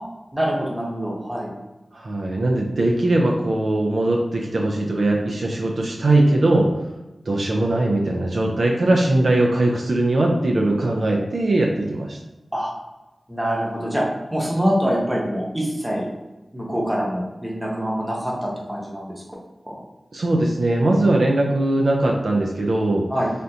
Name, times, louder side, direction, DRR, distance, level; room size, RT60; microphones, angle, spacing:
voice 1, 0.3-1.5 12.5-12.7 13.3-14.0 14.3-16.1 16.5-19.2 19.6-19.8 23.1-23.3, equal, 10° right, -4 dB, 0.9 m, -25 dB
voice 2, 1.9-6.7 7.3-12.2 20.1-23.1, right 2 dB, 65° right, 0 dB, 0.4 m, -20 dB
3.4 x 2.5 x 2.7 m, 1.0 s
wide cardioid pair, 100°, 0 cm